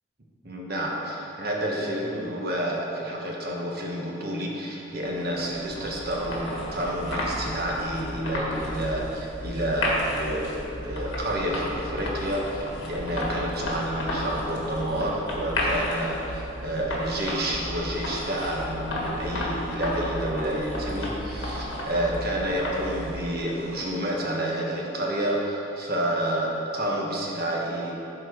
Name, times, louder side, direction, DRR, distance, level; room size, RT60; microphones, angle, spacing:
voice 1, 0.4-27.9, right 1 dB, 55° right, -2 dB, 1.3 m, -29 dB
sound 1, 5.1-24.1, left 1 dB, 80° left, 1.6 m, -32 dB
11.0 x 4.6 x 4.6 m, 3.0 s
head